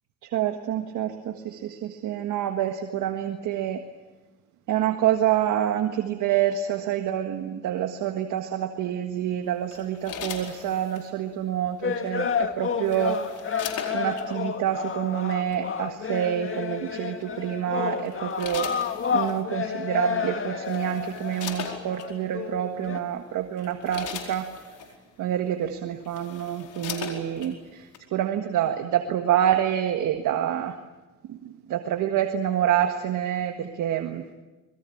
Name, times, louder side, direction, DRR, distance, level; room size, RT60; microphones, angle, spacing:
voice 1, 0.2-3.8 4.7-13.2 13.9-18.7 19.1-24.5 25.2-30.8 31.3-34.2, right 10 dB, 85° right, 6 dB, 1.7 m, -27 dB
sound 1, 9.7-11.1 12.4-14.3 15.3-15.6 17.2-17.5 18.0-19.4 20.2-20.3 20.6-22.1 22.8-23.0 23.4-24.9 25.6-25.7 26.0-27.5 27.9-28.0, left 7 dB, 85° left, 4.5 m, -38 dB
sound 2, 11.8-23.0, left 6 dB, 45° left, 2.2 m, -30 dB
26.0 x 21.5 x 8.7 m, 1.1 s
cardioid pair, 90°, 30 cm